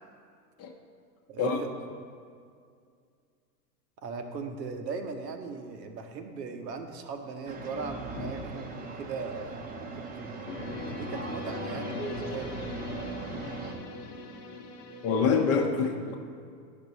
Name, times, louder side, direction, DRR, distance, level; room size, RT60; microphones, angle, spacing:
voice 1, 1.3-1.7 4.0-9.6 10.0-10.4 10.9-12.6, right 4 dB, 80° right, 5 dB, 1.0 m, -38 dB
sound 1, 7.5-13.7, right 3 dB, 20° right, 0.7 m, -39 dB
sound 2, 10.5-15.6, left 3 dB, 85° left, 1.0 m, -40 dB
voice 2, 15.0-16.2, left 5 dB, 30° left, 3 dB, 0.7 m, -25 dB
10.5 x 5.3 x 4.1 m, 2.2 s
hypercardioid pair, 110°, 49 cm